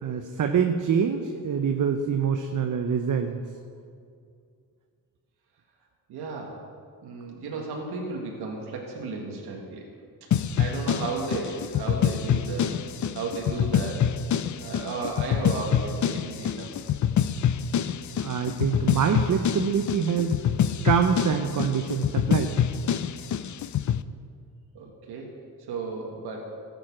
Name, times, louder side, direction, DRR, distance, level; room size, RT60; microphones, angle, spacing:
voice 1, 0.0-3.4 18.2-20.4 20.8-22.6, right 7 dB, 50° right, 5 dB, 0.9 m, -25 dB
voice 2, 6.1-6.6 7.0-9.8 10.6-12.8 13.1-14.1 14.5-16.7 24.7-25.3 25.7-26.4, right 3 dB, 85° right, 0 dB, 1.7 m, -34 dB
sound 1, 10.3-24.0, left 8 dB, 50° left, 0.6 m, -26 dB
13.5 x 7.9 x 6.1 m, 2.3 s
cardioid pair, 65°, 38 cm